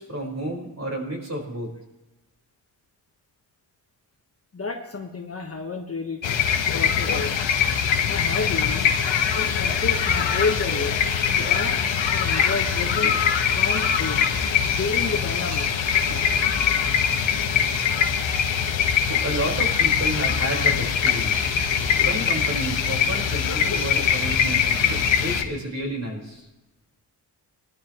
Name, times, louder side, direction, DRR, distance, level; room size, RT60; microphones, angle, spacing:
voice 1, 0.0-1.7 19.2-21.5 21.9-26.4, right 1 dB, 35° right, 0 dB, 4.6 m, -31 dB
voice 2, 4.5-6.2 6.7-7.3 8.1-8.9 9.3-11.0 11.3-13.1 13.5-14.3 14.7-15.7, left 4 dB, 30° left, 3 dB, 1.4 m, -30 dB
sound 1, 6.2-25.4, left 7 dB, 90° left, 1.3 m, -22 dB
sound 2, 7.5-23.9, left 1 dB, 10° left, 3.4 m, -43 dB
Chink clink, 12.0-26.4, right 1 dB, 65° right, 5.4 m, -45 dB
21.5 x 12.5 x 3.1 m, 1.0 s
wide cardioid pair, 110°, 44 cm